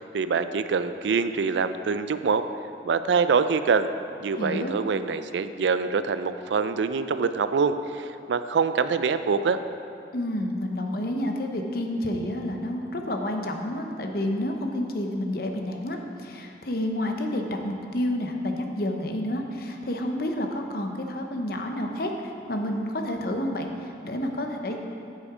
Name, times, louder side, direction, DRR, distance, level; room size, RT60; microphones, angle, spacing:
voice 1, 0.0-2.4 2.8-3.9 4.2-9.6, right 5 dB, 75° right, 11 dB, 0.4 m, -25 dB
voice 2, 4.4-4.7 10.1-24.8, left 1 dB, 55° left, 3 dB, 0.8 m, -29 dB
8.4 x 7.6 x 4.9 m, 2.6 s
head